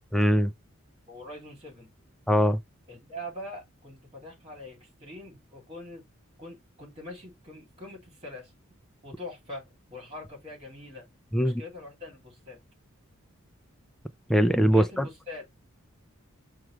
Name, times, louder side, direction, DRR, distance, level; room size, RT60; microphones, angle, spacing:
voice 1, 0.1-0.5 2.3-2.6 11.3-11.6 14.3-15.0, equal, ahead, 0.3 m, -21 dB
voice 2, 1.1-1.9 2.9-6.0 6.4-8.5 9.0-11.1 11.4-12.6 14.7-15.4, left 1 dB, 30° right, 2.4 m, -43 dB
6.1 x 2.4 x 3.0 m
head